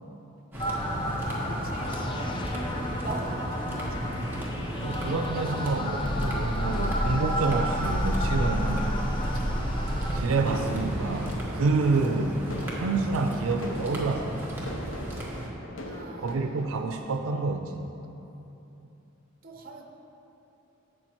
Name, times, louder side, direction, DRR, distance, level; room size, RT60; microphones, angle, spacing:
sound 1, 0.5-15.5, equal, 10° right, 1.3 m, -34 dB
sound 2, 0.6-10.2, equal, 25° left, 0.6 m, -31 dB
voice 1, 1.4-4.2 5.1-5.8 15.9-16.5 19.4-19.8, right 3 dB, 45° right, 2 dB, 0.9 m, -42 dB
voice 2, 4.8-8.9 10.1-12.4 12.7-14.6 16.2-17.9, right 3 dB, 90° right, 5 dB, 0.4 m, -28 dB
sound 3, 10.4-16.7, left 1 dB, 70° left, 0.8 m, -41 dB
12.0 x 7.8 x 3.0 m, 2.9 s
head